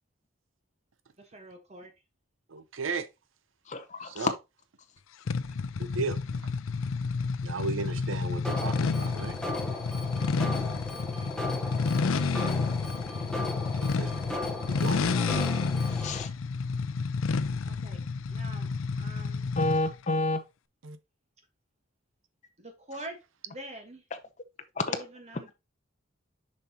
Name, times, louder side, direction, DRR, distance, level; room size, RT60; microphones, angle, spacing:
voice 1, 1.2-1.9 11.2-11.6 14.9-15.4 17.6-18.7 18.9-19.5 22.6-23.2 23.4-24.0 24.9-25.5, right 1 dB, 35° right, 1.3 m, -45 dB
voice 2, 2.5-3.1 4.0-4.3 5.8-6.2 7.4-9.4 12.2-12.5 13.8-14.1 14.7-15.0 20.8-21.0, right 4 dB, 80° right, 0.7 m, -35 dB
voice 3, 3.7-4.3 15.9-16.3 19.6-20.4 24.8-25.0, left 2 dB, 35° left, 0.7 m, -29 dB
sound 1, 5.3-19.9, left 4 dB, 85° left, 0.5 m, -30 dB
Alarm, 8.4-16.2, left 2 dB, 5° left, 1.0 m, -36 dB
7.1 x 5.4 x 2.9 m
head